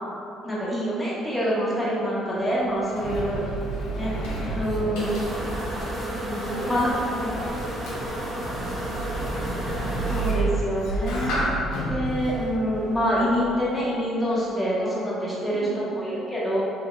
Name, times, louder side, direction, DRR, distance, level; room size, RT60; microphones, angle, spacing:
voice 1, 0.4-3.4 3.9-4.1 4.5-5.2 6.2-7.3 10.1-11.6 11.9-16.6, equal, 15° left, -7 dB, 1.2 m, -26 dB
Sliding door, 2.4-13.8, right 2 dB, 75° left, 0.6 m, -32 dB
voice 2, 3.8-6.0 6.3-6.7 7.1-9.1 11.5-12.0 15.5-16.0, right 1 dB, 80° right, -10 dB, 0.7 m, -41 dB
sound 1, 5.0-10.3, right 1 dB, 45° right, 0.8 m, -32 dB
3.3 x 3.0 x 2.5 m, 2.6 s
hypercardioid pair, 55°, 0 cm